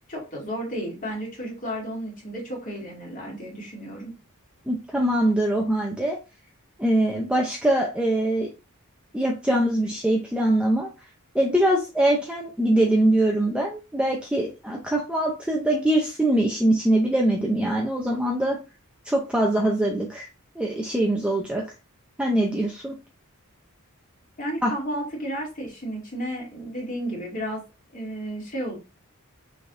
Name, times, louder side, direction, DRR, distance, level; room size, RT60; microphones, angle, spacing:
voice 1, 0.1-4.1 24.4-27.6 27.9-28.8, equal, 35° left, -3 dB, 2.2 m, -32 dB
voice 2, 4.7-6.2 6.8-8.5 9.1-10.9 11.3-18.6 19.1-20.3 20.6-21.6 22.2-22.9 24.6-24.7, right 1 dB, 5° right, -1 dB, 0.6 m, -23 dB
5.9 x 3.4 x 2.6 m, 0.30 s
head